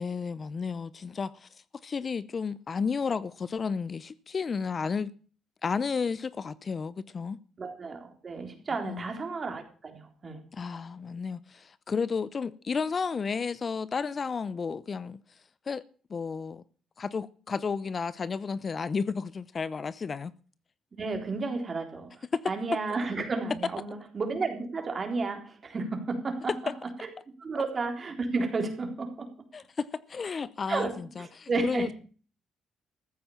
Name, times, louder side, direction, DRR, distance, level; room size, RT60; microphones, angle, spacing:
voice 1, 0.0-1.5 1.8-5.1 5.6-7.4 8.8-9.1 10.5-15.2 15.7-15.8 16.1-16.6 17.0-20.3 22.3-22.4 29.5-31.9, left 5 dB, 40° left, 0.6 m, -32 dB
voice 2, 7.6-10.4 21.0-26.5 27.0-27.1 27.4-29.3 30.7-31.9, right 3 dB, 40° right, 3.8 m, -32 dB
14.5 x 8.7 x 7.2 m
cardioid pair, 90°, 0 cm